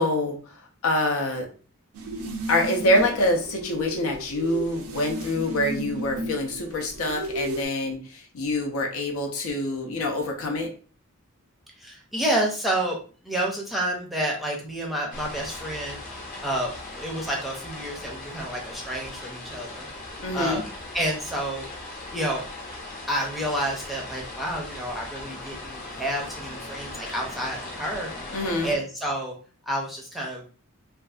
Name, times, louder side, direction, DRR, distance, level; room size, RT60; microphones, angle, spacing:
voice 1, 0.0-1.5 2.5-10.7 20.2-20.6 28.3-28.7, left 1 dB, 75° left, 2 dB, 0.6 m, -26 dB
sound 1, 1.9-7.7, right 1 dB, 85° right, 0.4 m, -34 dB
voice 2, 11.8-13.0 13.2-16.0 16.4-19.9 20.3-20.6 20.9-21.7 22.1-22.4 23.1-28.1 28.6-29.4 29.7-30.4, right 1 dB, ahead, -2 dB, 0.5 m, -29 dB
sound 2, 15.1-28.8, left 2 dB, 40° left, 0.8 m, -39 dB
2.6 x 2.4 x 2.3 m, 0.39 s
head